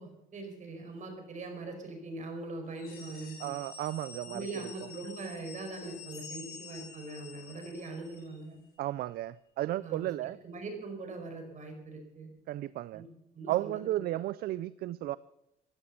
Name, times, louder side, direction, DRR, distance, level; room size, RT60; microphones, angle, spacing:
voice 1, 0.0-3.5 4.3-8.6 9.8-12.3 12.9-13.1 13.3-13.9, right 3 dB, 45° right, 5 dB, 4.8 m, -42 dB
sound 1, 0.7-2.3 3.4-3.5 5.0-5.1 6.1-10.2 11.7-11.8, left 5 dB, 30° left, 7.5 m, -54 dB
sound 2, 2.7-8.4, left 5 dB, 65° left, 5.5 m, -49 dB
voice 2, 3.4-4.5 8.8-10.4 12.5-13.0 13.5-15.2, right 15 dB, 65° right, 18 dB, 0.4 m, -34 dB
15.5 x 11.5 x 6.8 m, 0.86 s
cardioid pair, 110°, 17 cm